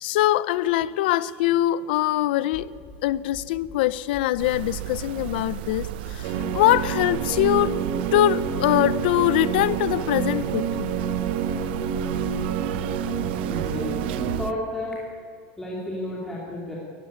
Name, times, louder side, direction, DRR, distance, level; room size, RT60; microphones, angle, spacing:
voice 1, 0.0-2.7 3.0-10.9, left 14 dB, 70° left, 0.8 m, -23 dB
sound 1, 2.5-2.9 3.3-3.7 4.1-4.5 4.9-5.3 5.7-6.1 6.5-6.9 7.3-7.7, left 1 dB, 20° left, 3.9 m, -44 dB
sound 2, 4.4-14.5, right 14 dB, 80° right, 0.7 m, -35 dB
sound 3, 6.2-14.4, right 7 dB, 50° right, 1.5 m, -28 dB
voice 2, 13.5-15.0 15.6-16.8, left 1 dB, 5° left, 2.6 m, -32 dB
19.5 x 15.0 x 9.7 m
supercardioid pair, 180°, 6 cm